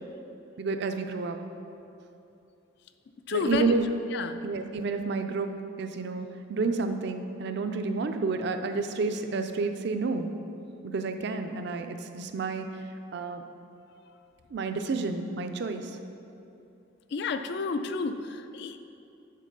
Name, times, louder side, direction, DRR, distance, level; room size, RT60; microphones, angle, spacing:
voice 1, 0.6-1.4 3.3-3.8 4.4-5.5 5.8-10.3 10.8-12.7 13.1-13.4 14.5-15.9, right 4 dB, 55° right, 7 dB, 0.4 m, -30 dB
voice 2, 3.3-3.7 4.1-4.4 17.1-18.8, left 4 dB, 55° left, 10 dB, 0.3 m, -30 dB
7.5 x 4.0 x 5.2 m, 2.7 s
head